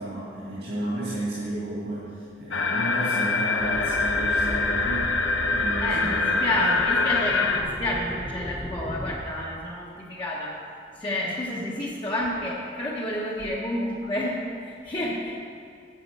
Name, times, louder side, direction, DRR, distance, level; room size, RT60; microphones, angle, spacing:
voice 1, 0.0-5.1 5.5-6.6, right 1 dB, 60° right, -7 dB, 2.1 m, -32 dB
sound 1, 2.5-7.6, left 3 dB, 90° left, 0.8 m, -24 dB
sound 2, 3.6-9.2, equal, 10° left, 0.6 m, -37 dB
voice 2, 5.8-10.6 11.0-15.4, left 1 dB, 25° left, -5 dB, 1.0 m, -29 dB
9.4 x 7.6 x 5.3 m, 2.4 s
head